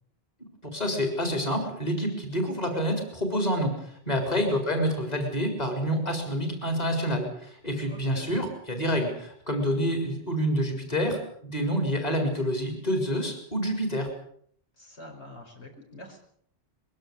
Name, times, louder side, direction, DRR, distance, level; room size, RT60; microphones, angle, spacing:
voice 1, 0.7-14.1, equal, 40° left, 4 dB, 4.6 m, -28 dB
voice 2, 7.8-8.4 14.8-16.2, left 1 dB, 80° left, 1 dB, 5.7 m, -45 dB
22.5 x 17.0 x 8.2 m, 0.63 s
omnidirectional pair, 1.1 m